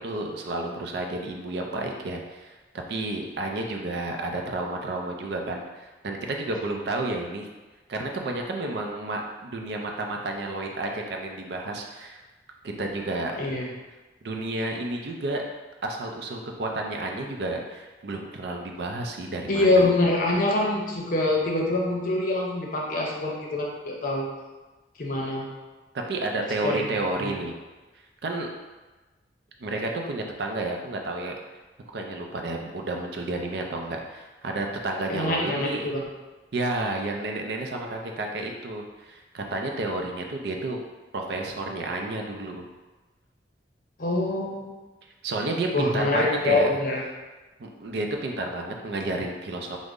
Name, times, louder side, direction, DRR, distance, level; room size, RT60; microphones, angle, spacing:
voice 1, 0.0-2.6 2.9-7.5 7.9-12.2 12.6-13.4 14.2-15.4 15.8-19.8 26.1-27.5 28.2-28.5 29.6-31.3 31.9-35.9 36.5-40.8 41.1-42.7 45.2-46.8 47.6-49.8, right 2 dB, 60° right, 2 dB, 0.4 m, -31 dB
voice 2, 13.4-13.7 19.5-24.3 25.0-25.5 26.6-26.9 27.2-27.3 35.1-36.0 44.0-44.7 45.7-47.0, left 2 dB, 50° left, -2 dB, 0.6 m, -25 dB
3.7 x 2.0 x 3.6 m, 1.2 s
head